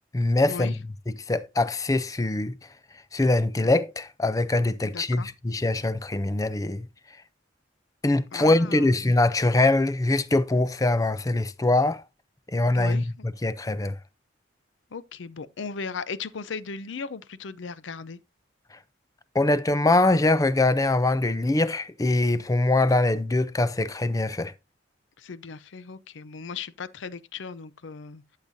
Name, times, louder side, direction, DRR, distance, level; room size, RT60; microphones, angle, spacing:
voice 1, 0.1-0.8 1.1-2.6 3.1-6.9 8.0-12.0 12.5-14.0 19.3-24.5, left 2 dB, 20° left, 0.5 m, -23 dB
voice 2, 4.8-5.3 8.3-9.0 12.7-13.3 14.9-18.2 25.2-28.2, left 5 dB, 80° left, 0.6 m, -37 dB
12.0 x 6.6 x 2.6 m
head